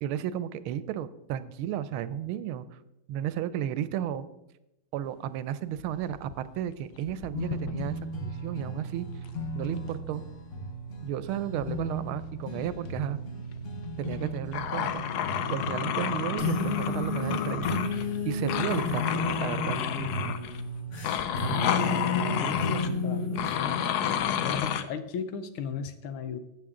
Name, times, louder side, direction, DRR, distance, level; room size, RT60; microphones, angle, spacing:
voice 1, 0.0-2.8 3.1-4.2 4.9-9.1 9.5-10.2 11.0-13.2 14.0-15.0 15.5-19.8 22.7-23.0, right 10 dB, 90° right, 15 dB, 1.5 m, -33 dB
sound 1, 5.8-6.7 6.9-8.0 9.4-9.9 11.6-11.8 12.5-12.7 13.1-13.2 14.1-18.2 18.5-20.6 21.0-22.9 23.4-24.8, left 9 dB, 65° left, 1.0 m, -31 dB
sound 2, 7.3-23.6, left 2 dB, 40° left, 1.5 m, -33 dB
voice 2, 22.7-23.8 24.4-26.4, left 6 dB, 85° left, 11 dB, 1.7 m, -36 dB
13.0 x 8.3 x 3.7 m, 0.88 s
omnidirectional pair, 2.3 m